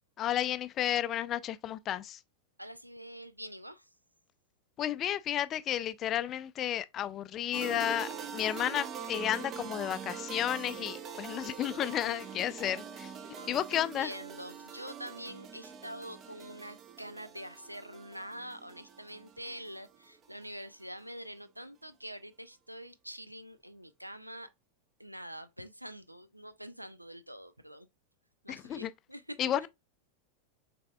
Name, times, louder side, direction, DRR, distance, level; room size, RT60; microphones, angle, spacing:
voice 1, 0.2-2.2 4.8-13.1 13.5-14.1 28.5-28.9 29.4-29.7, left 11 dB, 30° left, 0.4 m, -32 dB
voice 2, 2.6-3.9 13.4-24.5 25.0-27.9 28.4-29.4, equal, 90° right, 0.5 m, -45 dB
sound 1, 7.5-20.4, right 7 dB, 30° right, 0.7 m, -44 dB
6.4 x 3.4 x 2.3 m
figure-of-eight pair, 90°, 0 cm